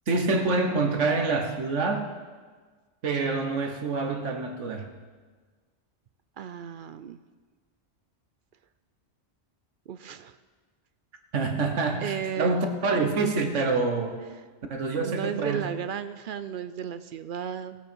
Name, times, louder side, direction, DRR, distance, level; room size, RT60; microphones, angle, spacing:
voice 1, 0.1-2.1 3.0-4.9 11.3-14.2 14.7-15.7, right 3 dB, 80° right, 5 dB, 1.5 m, -26 dB
voice 2, 6.4-7.2 9.9-10.4 12.0-12.7 15.0-17.8, right 8 dB, 60° right, 12 dB, 0.6 m, -34 dB
17.5 x 8.1 x 4.5 m, 1.5 s
omnidirectional pair, 1.2 m